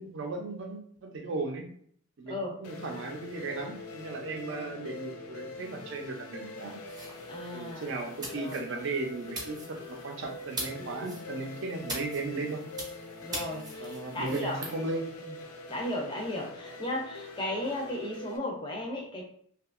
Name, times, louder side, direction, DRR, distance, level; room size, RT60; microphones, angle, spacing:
voice 1, 0.0-1.7 2.2-6.8 7.5-12.6 13.8-15.1 16.7-16.8, right 3 dB, 55° right, 3 dB, 0.4 m, -36 dB
sound 1, 2.6-18.4, left 3 dB, 80° left, 0.4 m, -44 dB
sound 2, 6.9-14.7, right 1 dB, 20° right, 0.6 m, -43 dB
voice 2, 7.3-7.9 8.3-8.6 10.8-11.2 13.2-14.6 15.3-15.4 15.7-19.2, left 1 dB, 20° left, -1 dB, 0.4 m, -35 dB
2.7 x 2.3 x 2.4 m, 0.62 s
head